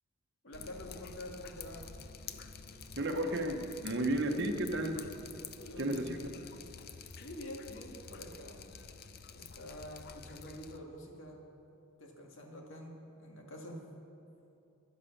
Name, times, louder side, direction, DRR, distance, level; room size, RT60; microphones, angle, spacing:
voice 1, 0.4-1.9 5.5-6.5 7.1-8.6 9.3-11.4 12.0-13.8, left 1 dB, 65° left, 0 dB, 2.0 m, -47 dB
Drip, 0.5-10.8, left 5 dB, 45° left, 0.6 m, -49 dB
voice 2, 3.0-5.0 5.8-6.2, right 1 dB, 55° right, 5 dB, 1.0 m, -33 dB
11.0 x 10.5 x 7.2 m, 2.7 s
head